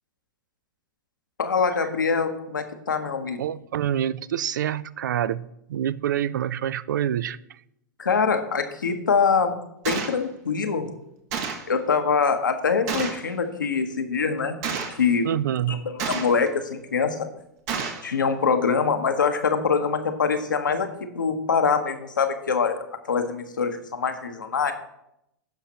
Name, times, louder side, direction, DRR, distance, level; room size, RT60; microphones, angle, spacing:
voice 1, 1.4-3.4 8.0-9.6 9.8-10.9 11.7-14.6 15.0-15.3 15.7-17.3 18.0-20.9 21.1-24.7, left 5 dB, 90° left, 6 dB, 1.0 m, -24 dB
voice 2, 3.4-7.6 15.2-15.9, right 10 dB, 75° right, 20 dB, 0.4 m, -27 dB
Gunshot gunfire, 9.9-10.2 11.3-11.7 12.9-13.3 14.6-15.0 16.0-16.5 17.7-18.1, right 6 dB, 55° right, 1.3 m, -30 dB
15.5 x 5.8 x 2.9 m, 0.81 s
hypercardioid pair, 100°, 10 cm